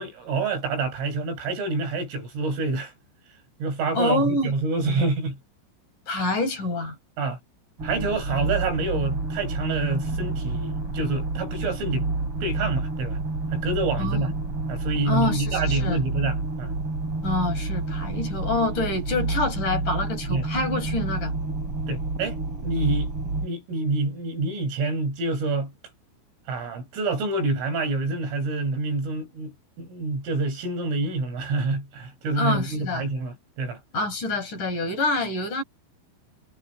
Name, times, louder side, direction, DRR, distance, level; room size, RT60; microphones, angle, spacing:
voice 1, 0.0-2.9 3.6-5.4 7.2-7.4 7.8-12.1 12.4-13.2 13.5-14.3 14.7-16.7 20.3-20.5 21.9-23.1 23.4-25.7 26.5-33.8, right 3 dB, 80° right, 10.5 m, -27 dB
voice 2, 3.9-4.5 6.1-6.9 14.0-14.2 15.1-16.0 17.2-21.3 32.4-33.1 33.9-35.6, left 2 dB, 40° left, 6.4 m, -26 dB
sound 1, 7.8-23.5, right 3 dB, 30° right, 6.2 m, -29 dB
omnidirectional pair, 5.7 m